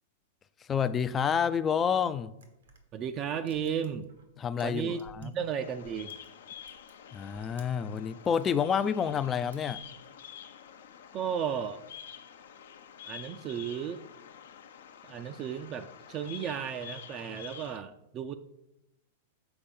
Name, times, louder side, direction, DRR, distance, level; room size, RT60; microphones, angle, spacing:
voice 1, 0.7-2.3 4.4-5.3 7.1-9.8, left 7 dB, 25° left, 0.4 m, -29 dB
sound 1, 2.3-5.5 5.8-8.5 9.0-10.1, right 4 dB, 80° right, 1.2 m, -59 dB
voice 2, 2.9-4.1 4.6-6.1 11.1-11.8 13.0-14.0 15.0-18.4, right 8 dB, 35° right, 0.5 m, -34 dB
Bird vocalization bird call bird song, 5.6-17.8, left 9 dB, 75° left, 0.6 m, -48 dB
7.0 x 4.3 x 5.3 m
hypercardioid pair, 105°, 0 cm